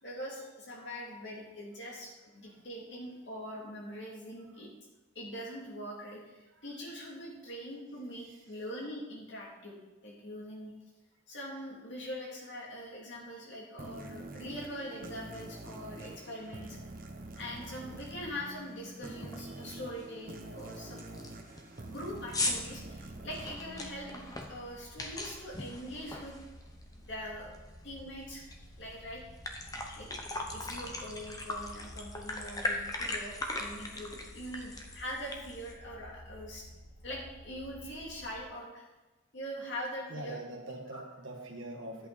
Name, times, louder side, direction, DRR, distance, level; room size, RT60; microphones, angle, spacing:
voice 1, 0.0-4.7 5.1-9.8 10.0-10.7 11.3-16.8 17.4-21.3 21.9-26.4 27.0-27.5 27.8-29.2 30.0-36.7 37.0-38.9 39.3-40.4 40.9-41.0, equal, 65° left, -3 dB, 2.7 m, -43 dB
voice 2, 8.2-8.6 15.8-15.9 30.4-30.6 40.1-42.1, right 1 dB, 80° right, 2 dB, 1.6 m, -44 dB
sound 1, 13.8-25.0, right 2 dB, 45° right, 1.0 m, -46 dB
sound 2, 17.6-17.7 18.1-18.4 18.7-18.8 19.2-19.6 20.0-20.1 20.6-20.7 21.0-26.9 27.3-28.6 28.9-29.0 29.3-35.7, left 2 dB, 20° left, 0.9 m, -39 dB
sound 3, 22.4-38.4, equal, 45° left, 1.8 m, -53 dB
11.0 x 8.2 x 4.2 m, 1.1 s
head